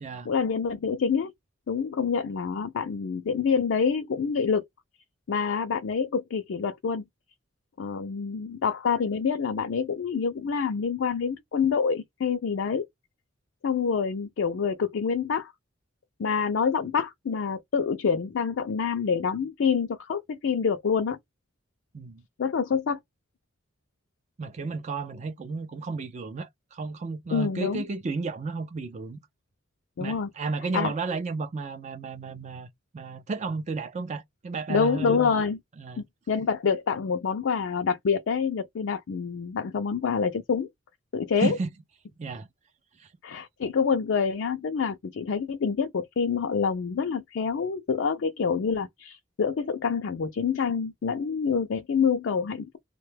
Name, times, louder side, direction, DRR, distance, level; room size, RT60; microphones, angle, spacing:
voice 1, 0.3-1.3 1.7-4.6 5.3-7.0 7.8-12.8 13.6-15.5 16.2-21.2 22.4-23.0 27.3-27.8 30.0-30.3 30.7-30.9 34.7-35.6 36.0-40.7 41.1-41.6 43.2-52.8, left 6 dB, 65° left, 0.4 m, -27 dB
voice 2, 24.4-29.2 30.0-32.7 32.9-35.3 35.8-36.0 41.4-41.7 42.2-42.5 43.0-43.1, right 3 dB, 35° right, 0.3 m, -33 dB
2.7 x 2.2 x 3.2 m
head